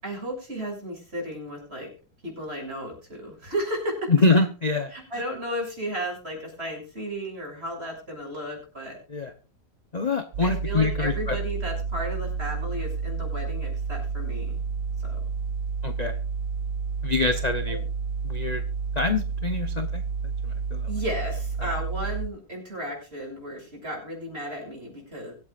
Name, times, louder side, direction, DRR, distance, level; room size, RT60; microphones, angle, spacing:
voice 1, 0.0-1.9 2.2-4.1 4.9-9.0 10.4-14.6 15.0-15.2 17.7-17.8 20.9-25.3, equal, 35° right, -1 dB, 6.9 m, -34 dB
voice 2, 4.1-5.2 9.1-9.3 9.9-11.4 15.8-16.1 17.0-17.8 18.2-18.6 19.0-20.0 20.4-20.9, left 3 dB, 35° left, 8 dB, 0.7 m, -25 dB
sound 1, 10.3-22.3, right 5 dB, 60° right, 1.0 m, -30 dB
24.0 x 8.4 x 2.5 m, 0.33 s
omnidirectional pair, 2.0 m